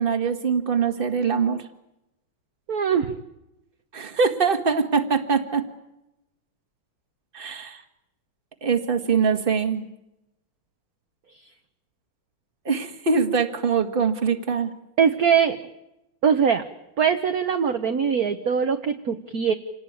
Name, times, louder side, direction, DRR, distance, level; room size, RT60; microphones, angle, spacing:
voice 1, 0.0-1.6 3.9-5.6 7.3-7.8 8.6-9.9 12.7-14.7, right 5 dB, 25° right, 7 dB, 1.7 m, -23 dB
voice 2, 2.7-3.1 15.0-15.6 16.2-16.6 17.0-19.5, right 7 dB, 50° right, 7 dB, 1.4 m, -21 dB
28.0 x 18.5 x 9.4 m, 0.92 s
omnidirectional pair, 2.4 m